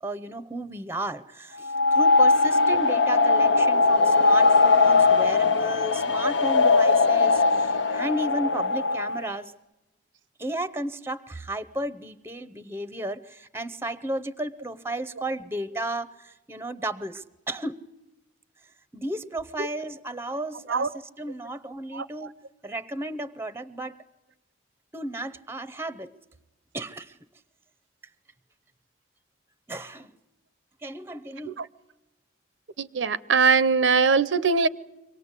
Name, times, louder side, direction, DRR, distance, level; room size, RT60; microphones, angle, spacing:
voice 1, 0.0-9.5 10.4-17.8 18.9-22.3 22.6-24.0 24.9-26.1 26.7-27.2 29.7-30.1 30.8-31.6, right 1 dB, 15° right, 0.7 m, -34 dB
sound 1, 1.6-9.3, left 3 dB, 70° left, 0.8 m, -20 dB
voice 2, 32.8-34.7, right 5 dB, 75° right, 0.7 m, -21 dB
25.0 x 18.5 x 8.2 m
head